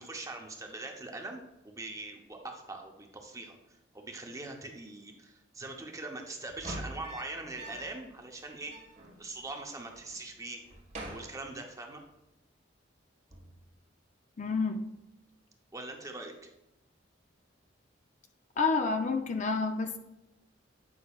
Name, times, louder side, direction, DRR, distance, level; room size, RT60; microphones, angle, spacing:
voice 1, 0.0-8.7 9.2-10.6 11.1-12.0 15.7-16.5, right 2 dB, 15° right, 2 dB, 0.8 m, -42 dB
sound 1, 6.5-8.1 8.4-8.5 8.7-9.7 10.0-10.3 10.6-12.1 13.3-13.7, right 1 dB, 40° right, 1.3 m, -45 dB
voice 2, 14.4-14.8 18.6-20.0, left 4 dB, 40° left, 6 dB, 0.4 m, -29 dB
8.6 x 5.4 x 2.3 m, 0.93 s
head